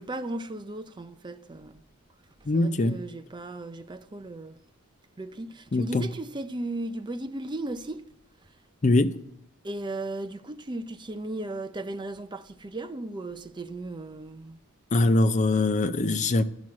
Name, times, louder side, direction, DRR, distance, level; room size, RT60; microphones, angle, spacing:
voice 1, 0.0-1.8 2.5-4.6 5.2-8.1 9.6-14.6, right 2 dB, 20° right, 0.5 m, -36 dB
voice 2, 2.5-3.0 5.7-6.1 8.8-9.2 14.9-16.4, left 2 dB, 35° left, 0.5 m, -22 dB
12.0 x 6.2 x 7.3 m
head